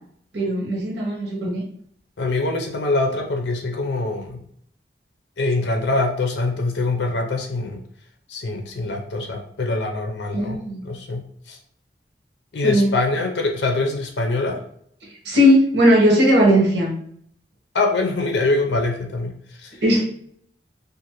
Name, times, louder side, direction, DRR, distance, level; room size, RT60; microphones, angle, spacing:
voice 1, 0.3-1.6 10.3-10.8 12.6-12.9 15.2-16.9 19.8-20.0, equal, 90° right, -2 dB, 1.0 m, -17 dB
voice 2, 2.2-4.4 5.4-7.8 8.3-11.2 11.5-11.6 12.5-14.6 17.7-19.3 19.6-19.8, left 2 dB, 80° left, 2 dB, 0.5 m, -24 dB
2.5 x 2.5 x 2.9 m, 0.65 s
head